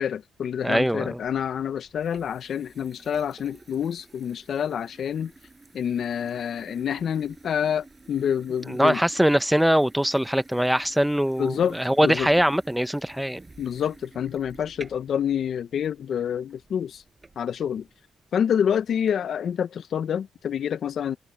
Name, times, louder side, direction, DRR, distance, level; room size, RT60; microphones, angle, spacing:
voice 1, 0.0-5.3 5.7-9.0 11.4-12.3 13.6-17.0 17.4-17.9 18.3-21.2, left 8 dB, 65° left, 1.1 m, -27 dB
voice 2, 0.6-1.2 8.7-13.4, equal, 5° right, 1.0 m, -22 dB
sound 1, 1.0-19.1, right 3 dB, 25° right, 7.8 m, -51 dB
supercardioid pair, 65°, 0 cm